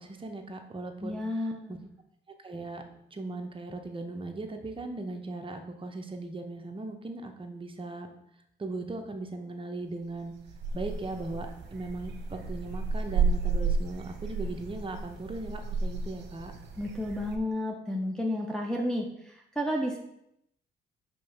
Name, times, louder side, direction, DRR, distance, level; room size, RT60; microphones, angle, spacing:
voice 1, 0.0-1.2 1.7-1.8 2.4-2.8 3.1-8.1 8.6-10.3 10.7-16.5, right 2 dB, 25° right, 4 dB, 0.9 m, -38 dB
voice 2, 1.0-1.9 16.8-20.0, left 1 dB, 5° left, -1 dB, 0.7 m, -32 dB
sound 1, 10.1-17.4, right 4 dB, 60° right, 1.0 m, -32 dB
5.4 x 3.3 x 5.4 m, 0.77 s
cardioid pair, 90°, 20 cm